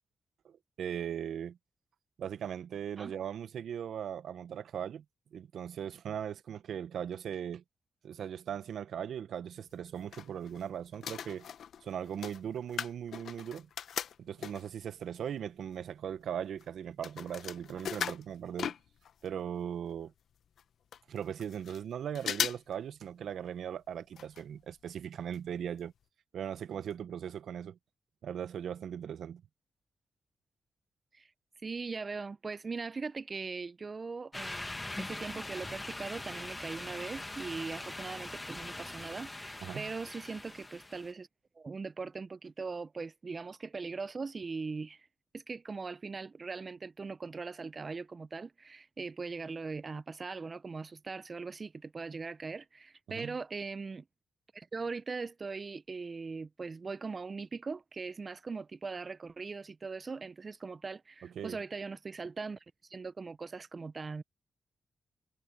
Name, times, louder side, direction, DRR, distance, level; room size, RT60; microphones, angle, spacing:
voice 1, 0.4-1.6 2.2-5.0 5.3-7.6 8.0-11.5 11.8-13.7 14.2-18.7 19.2-20.1 21.1-25.9 26.3-27.8 28.2-29.4 39.6-39.9 53.1-53.4 61.3-61.6, right 9 dB, 75° right, 1.2 m, -39 dB
sound 1, 9.7-10.6 10.9-14.8 15.4-15.5 15.7-19.3 19.6-19.7 19.9-20.0 20.6-20.7 20.9-21.8 22.1-22.8 23.1-23.2 24.1-24.4 24.7-24.8 25.3-25.4 25.8-25.9, left 8 dB, 75° left, 1.1 m, -39 dB
voice 2, 31.6-41.3 41.6-45.1 45.3-54.0 54.5-64.2, right 4 dB, 45° right, 0.7 m, -40 dB
sound 2, 34.3-41.1, left 2 dB, 20° left, 1.7 m, -42 dB
supercardioid pair, 40°, 0 cm